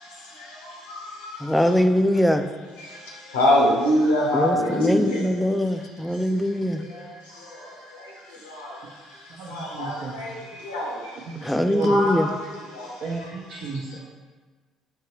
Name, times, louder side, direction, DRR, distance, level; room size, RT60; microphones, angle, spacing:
voice 1, 1.4-2.4 4.3-6.8 11.4-12.3, left 1 dB, 5° left, 8 dB, 0.3 m, -22 dB
voice 2, 3.3-5.0 9.8-9.9 10.7-10.8 11.9-12.1, left 1 dB, 85° left, -3 dB, 0.9 m, -20 dB
voice 3, 9.3-10.2 11.3-12.0 13.0-14.0, right 4 dB, 65° right, -5 dB, 0.6 m, -33 dB
4.6 x 2.9 x 3.0 m, 1.4 s
hypercardioid pair, 55°, 0 cm